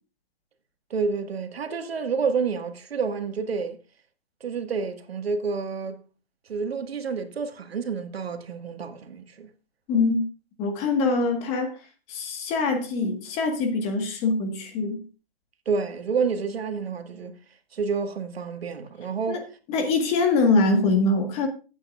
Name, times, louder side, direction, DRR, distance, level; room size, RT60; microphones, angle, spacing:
voice 1, 0.9-3.8 4.4-6.0 6.5-9.5 15.7-17.4 17.7-19.4, right 5 dB, 90° right, 1.8 m, -29 dB
voice 2, 10.6-11.7 12.1-15.0 19.3-19.4 19.7-21.5, left 3 dB, 20° left, 1.5 m, -23 dB
16.0 x 8.7 x 2.4 m
hypercardioid pair, 160°, 30 cm